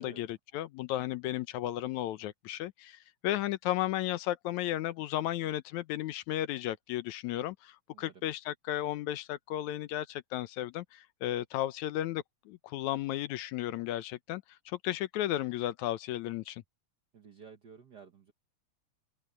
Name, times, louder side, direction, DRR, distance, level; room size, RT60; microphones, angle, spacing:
voice 1, 0.0-16.6, left 13 dB, 75° left, 2.1 m, -34 dB
voice 2, 7.9-8.2 17.1-18.3, right 6 dB, 60° right, 1.1 m, -53 dB
open air
omnidirectional pair, 3.4 m